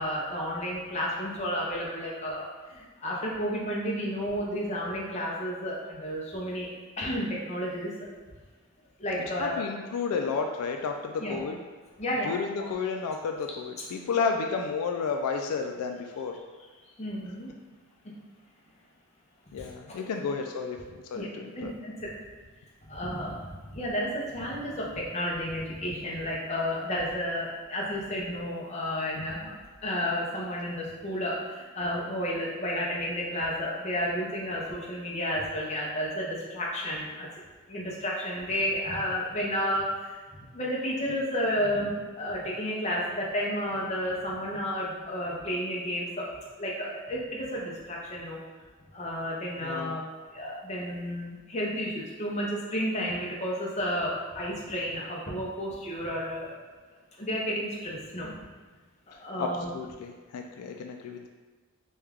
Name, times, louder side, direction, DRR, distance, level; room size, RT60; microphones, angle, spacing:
voice 1, 0.0-6.7 7.0-7.9 9.0-9.6 11.2-11.4 12.0-12.4 16.8-17.5 19.6-19.7 21.1-21.3 21.5-22.1 22.9-29.5 29.8-37.3 37.7-40.2 40.5-46.3 46.6-48.4 48.9-50.0 50.3-56.5 57.2-58.4 59.1-59.7, equal, 30° left, -4 dB, 0.6 m, -32 dB
voice 2, 9.2-11.6 12.1-16.4 19.5-21.7 27.0-27.1 49.6-50.0 59.1-61.3, left 5 dB, 85° left, 8 dB, 0.3 m, -32 dB
3.2 x 2.3 x 3.4 m, 1.4 s
head